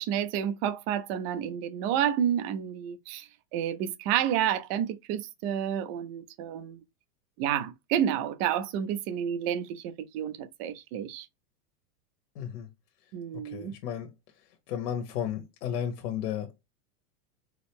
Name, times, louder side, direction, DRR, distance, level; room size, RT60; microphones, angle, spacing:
voice 1, 0.0-6.8 7.4-11.3 13.1-13.7, right 10 dB, 40° right, 0.6 m, -30 dB
voice 2, 12.3-12.7 13.4-14.1 14.7-16.5, left 9 dB, 75° left, 1.1 m, -33 dB
4.6 x 2.1 x 3.4 m
supercardioid pair, 135°, 48 cm